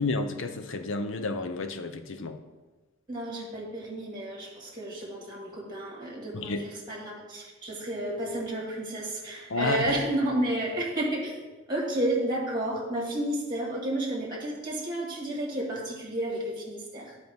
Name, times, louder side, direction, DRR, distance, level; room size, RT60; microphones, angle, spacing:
voice 1, 0.0-2.4 6.3-6.6 9.5-10.0, left 3 dB, 65° left, 8 dB, 0.7 m, -30 dB
voice 2, 3.1-11.4 11.7-17.2, right 1 dB, 20° right, -2 dB, 1.8 m, -31 dB
13.0 x 4.7 x 3.5 m, 1.2 s
head